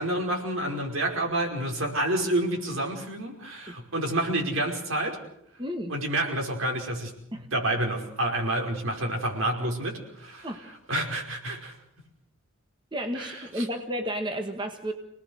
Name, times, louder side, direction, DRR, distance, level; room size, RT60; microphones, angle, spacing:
voice 1, 0.0-5.2 5.9-10.5 10.9-11.7 13.1-13.7, right 1 dB, 90° right, 1 dB, 5.3 m, -29 dB
voice 2, 5.6-5.9 7.3-7.5 10.4-10.6 12.9-14.9, equal, 25° right, 5 dB, 1.6 m, -32 dB
26.5 x 19.0 x 6.5 m, 0.75 s
head